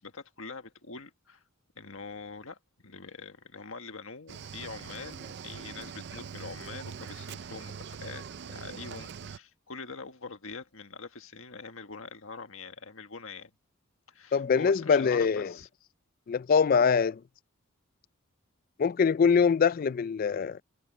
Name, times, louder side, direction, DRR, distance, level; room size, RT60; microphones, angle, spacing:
voice 1, 0.0-1.4 1.7-13.5 14.1-15.7, left 4 dB, 75° left, 1.7 m, -44 dB
Cricket / Waves surf, 4.3-9.4, right 6 dB, 55° right, 0.4 m, -42 dB
voice 2, 14.3-15.5 16.3-17.2 18.8-20.6, left 6 dB, 45° left, 0.3 m, -23 dB
head